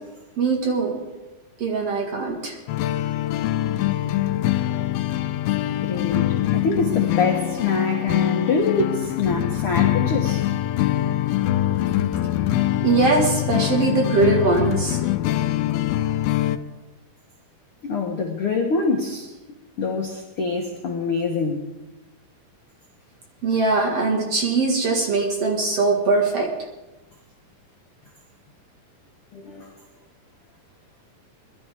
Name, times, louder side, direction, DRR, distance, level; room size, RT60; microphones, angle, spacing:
voice 1, 0.4-1.0 1.6-2.5 12.8-15.0 23.4-26.5, right 3 dB, 50° right, 0 dB, 2.4 m, -21 dB
sound 1, 2.7-16.6, left 13 dB, 85° left, 2.4 m, -23 dB
voice 2, 5.8-10.4 12.3-12.5 17.8-19.3 19.8-21.6 29.3-29.7, left 4 dB, 70° left, 1 dB, 1.3 m, -25 dB
22.0 x 12.0 x 3.6 m, 1.1 s
omnidirectional pair, 4.3 m